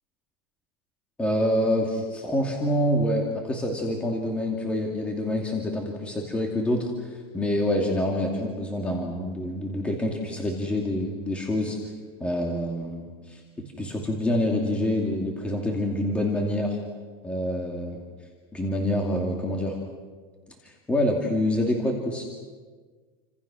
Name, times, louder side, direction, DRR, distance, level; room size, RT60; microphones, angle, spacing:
voice 1, 1.2-6.9 7.3-11.8 12.2-16.8 17.2-18.0 18.5-19.7 20.6-22.3, left 1 dB, 10° left, 0 dB, 2.6 m, -26 dB
30.0 x 26.0 x 6.3 m, 1.5 s
supercardioid pair, 165°, 13 cm